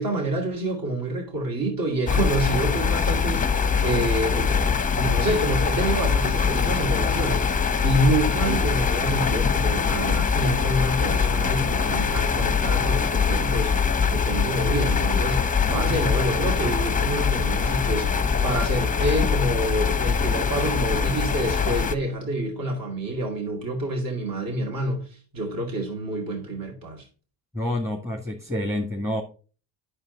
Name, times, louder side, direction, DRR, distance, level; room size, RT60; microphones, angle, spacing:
voice 1, 0.0-7.6 7.8-27.1, right 1 dB, 45° right, 2.6 m, -27 dB
sound 1, 2.1-22.0, left 6 dB, 15° left, 0.7 m, -23 dB
voice 2, 27.5-29.2, left 1 dB, 5° right, 1.7 m, -28 dB
8.9 x 6.6 x 4.0 m
cardioid pair, 85°, 48 cm